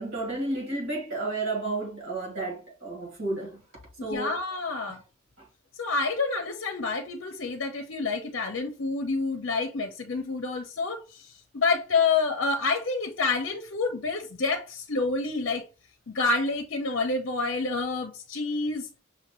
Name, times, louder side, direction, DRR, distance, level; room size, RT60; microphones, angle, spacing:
voice 1, 0.0-3.6 4.0-4.3, right 2 dB, 70° right, 2.1 m, -31 dB
voice 2, 4.1-5.0 5.8-15.7 16.1-18.9, left 3 dB, 60° left, 0.6 m, -28 dB
5.8 x 2.5 x 3.0 m
head